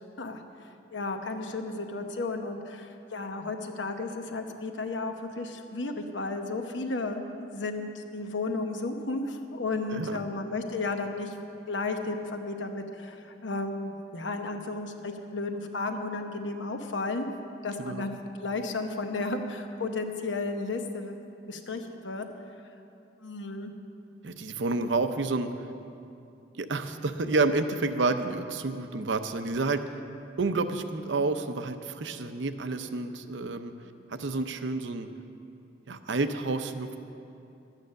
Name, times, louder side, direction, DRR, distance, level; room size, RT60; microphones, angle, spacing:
voice 1, 0.9-11.4 11.7-17.3 17.6-21.2 21.5-22.3 23.2-23.7, left 3 dB, 85° left, 5 dB, 1.0 m, -33 dB
voice 2, 9.9-10.2 17.8-18.1 24.2-25.7 26.6-30.0 30.4-33.7 34.1-35.1 35.9-37.0, right 3 dB, 80° right, 9 dB, 0.6 m, -29 dB
12.5 x 9.1 x 6.5 m, 2.7 s
head